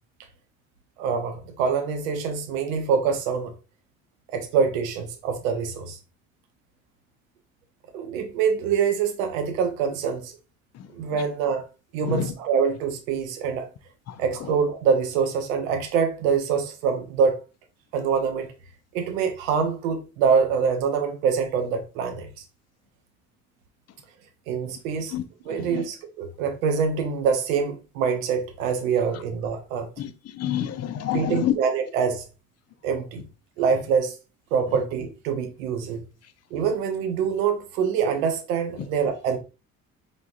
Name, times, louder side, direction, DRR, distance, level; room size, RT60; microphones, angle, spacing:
voice 1, 1.0-3.5 4.3-6.0 7.9-10.3 10.9-11.6 11.9-13.7 14.2-17.4 17.9-18.5 18.9-22.3 24.5-25.2 25.4-29.9 31.1-32.3 32.8-33.2 33.6-34.2 34.5-36.0 36.5-39.4, right 6 dB, 70° right, 0.9 m, -25 dB
voice 2, 30.4-31.6, left 11 dB, 40° left, 0.6 m, -26 dB
4.6 x 4.1 x 2.5 m
figure-of-eight pair, 45°, 42 cm